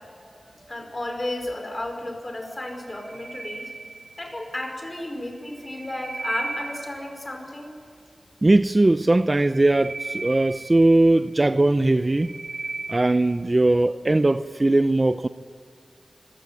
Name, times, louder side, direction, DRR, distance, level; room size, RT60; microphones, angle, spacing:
voice 1, 0.7-3.7 4.2-7.8, left 1 dB, 30° left, 5.2 m, -33 dB
sound 1, 2.8-4.5 5.4-7.3 9.2-11.3 11.8-13.4, right 3 dB, 65° right, 2.2 m, -36 dB
voice 2, 8.4-12.3 12.9-15.3, right 2 dB, 30° right, 0.6 m, -19 dB
25.5 x 16.0 x 9.0 m
wide cardioid pair, 70°, 0 cm